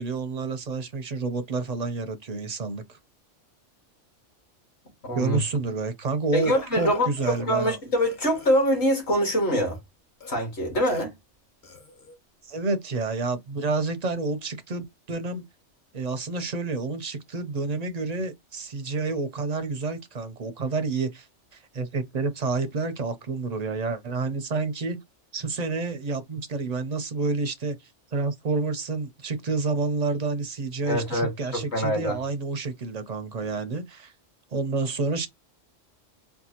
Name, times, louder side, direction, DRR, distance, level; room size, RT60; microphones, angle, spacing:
voice 1, 0.0-3.0 5.1-7.8 12.4-15.4 15.9-21.3 21.5-25.0 25.3-27.8 28.1-34.1 34.5-35.3, right 3 dB, 50° right, 0.5 m, -29 dB
voice 2, 5.0-5.4 6.3-9.8 10.3-11.1 30.8-32.2, equal, 60° left, 1.9 m, -24 dB
Burping eructation, 6.4-7.7 8.0-9.8 10.2-10.3 10.8-11.1 11.6-12.2, left 3 dB, 45° left, 1.1 m, -47 dB
4.5 x 2.2 x 2.8 m
omnidirectional pair, 1.3 m